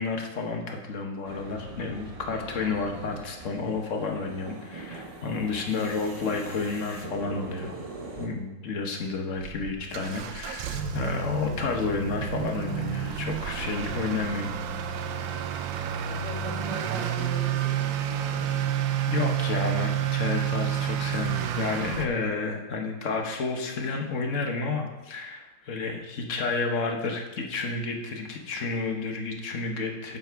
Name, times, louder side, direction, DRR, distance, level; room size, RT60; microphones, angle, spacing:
voice 1, 0.0-7.7 8.2-14.5 19.1-30.2, left 4 dB, 50° left, 3 dB, 1.0 m, -31 dB
sound 1, 1.2-8.3, right 3 dB, 45° right, 0.4 m, -41 dB
Motor vehicle (road) / Accelerating revving vroom, 9.4-22.1, right 10 dB, 75° right, 1.3 m, -30 dB
voice 2, 16.0-18.6, right 1 dB, 60° right, -2 dB, 2.2 m, -39 dB
8.0 x 6.8 x 4.6 m, 1.1 s
omnidirectional pair, 2.1 m